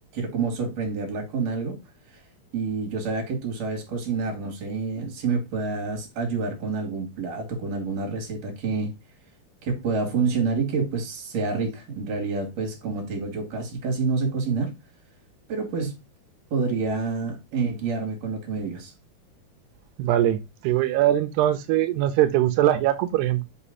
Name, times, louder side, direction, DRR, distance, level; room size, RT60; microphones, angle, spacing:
voice 1, 0.1-1.8 2.5-8.9 9.6-14.8 15.5-16.0 16.5-18.9, right 4 dB, 45° right, 3.1 m, -28 dB
voice 2, 20.0-23.5, right 13 dB, 90° right, 2.8 m, -22 dB
6.1 x 5.6 x 4.2 m
omnidirectional pair, 4.6 m